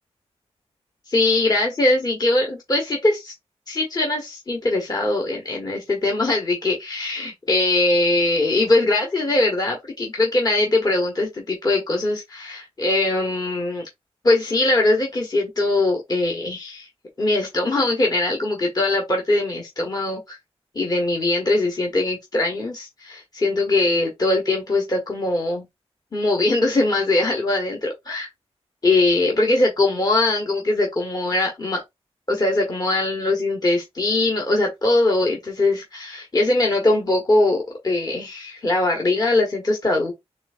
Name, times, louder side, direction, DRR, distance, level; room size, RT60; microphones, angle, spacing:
voice 1, 1.1-3.3 3.7-13.8 14.2-16.9 17.2-20.4 20.7-25.6 26.1-28.3 28.8-31.8 32.3-40.1, left 2 dB, 35° left, 1.1 m, -21 dB
4.2 x 3.5 x 2.5 m
wide cardioid pair, 120°, 11 cm